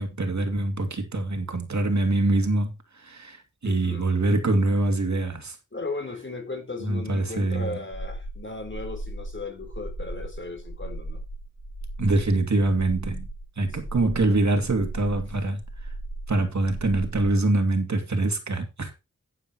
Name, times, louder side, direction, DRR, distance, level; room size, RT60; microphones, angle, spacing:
voice 1, 0.0-5.6 6.8-7.7 12.0-13.3 13.6-15.6 16.3-18.9, right 2 dB, 60° right, 2.6 m, -24 dB
voice 2, 3.6-4.1 5.7-11.2 15.4-15.5, left 3 dB, 35° left, 4.0 m, -36 dB
sound 1, 7.9-17.4, right 2 dB, 15° right, 4.4 m, -37 dB
11.5 x 9.9 x 3.0 m
wide cardioid pair, 80°, 32 cm